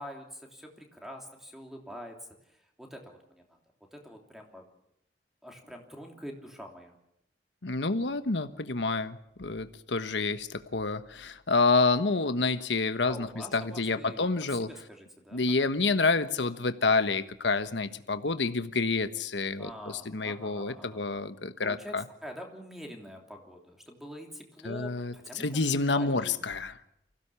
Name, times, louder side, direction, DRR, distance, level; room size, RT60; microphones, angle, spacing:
voice 1, 0.0-2.2 2.5-3.2 3.5-3.6 3.9-4.6 5.4-7.0 13.0-15.7 19.6-21.0 21.6-21.9 22.2-26.4, equal, ahead, 2 dB, 3.1 m, -45 dB
voice 2, 7.6-14.7 15.3-22.0 24.6-26.8, left 3 dB, 90° left, 10 dB, 1.3 m, -28 dB
25.0 x 16.5 x 7.1 m, 0.81 s
head